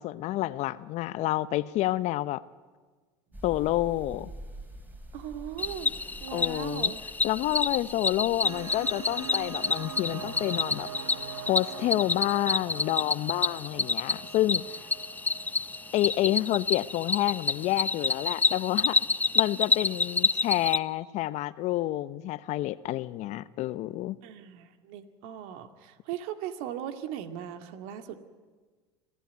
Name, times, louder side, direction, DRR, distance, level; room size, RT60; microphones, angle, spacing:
voice 1, 0.0-2.4 3.4-4.3 6.3-6.9 7.2-10.9 11.5-14.6 15.9-19.0 19.3-24.2, left 15 dB, 55° left, 16 dB, 0.9 m, -29 dB
sound 1, 3.3-11.7, right 1 dB, 10° right, 4.7 m, -48 dB
voice 2, 5.1-5.9 6.2-7.0 24.2-28.1, right 10 dB, 65° right, 7 dB, 2.2 m, -38 dB
Cricket, 5.6-20.8, left 3 dB, 10° left, 0.7 m, -28 dB
sound 2, 8.4-16.7, right 8 dB, 85° right, 1.8 m, -43 dB
27.0 x 16.0 x 9.5 m, 1.4 s
hypercardioid pair, 90°, 14 cm